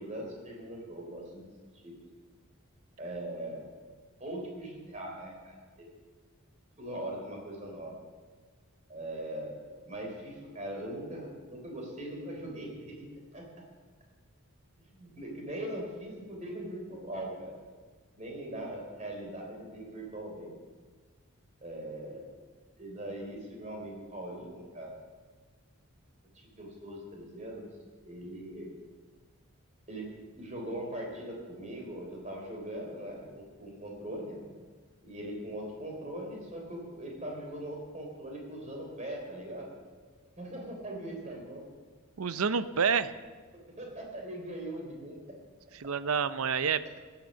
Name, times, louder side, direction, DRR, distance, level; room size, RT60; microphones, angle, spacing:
voice 1, 0.0-1.4 1.7-2.0 3.0-3.6 4.2-5.9 6.8-8.0 8.9-13.1 13.3-13.5 14.9-17.5 18.2-20.5 21.6-22.3 22.8-24.9 26.6-27.7 28.0-28.7 29.9-30.1 30.4-34.5 35.0-39.7 40.4-41.6 43.8-45.2, right 1 dB, 30° right, 0 dB, 3.7 m, -40 dB
voice 2, 42.2-43.1 45.8-47.0, right 6 dB, 75° right, 13 dB, 0.6 m, -28 dB
16.0 x 8.9 x 6.5 m, 1.4 s
head